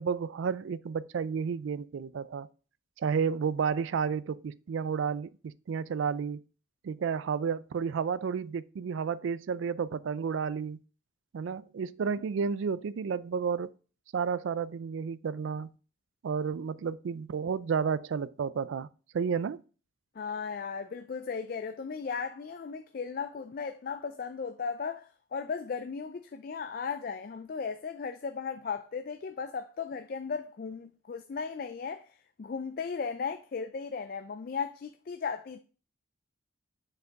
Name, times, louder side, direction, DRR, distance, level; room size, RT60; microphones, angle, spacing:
voice 1, 0.0-2.5 3.0-6.4 6.8-10.8 11.3-13.7 14.1-15.7 16.2-18.9 19.1-19.6, right 6 dB, 70° right, 0.3 m, -31 dB
voice 2, 20.2-32.1 32.4-35.6, left 5 dB, 45° left, 0.3 m, -36 dB
6.5 x 4.7 x 3.4 m
head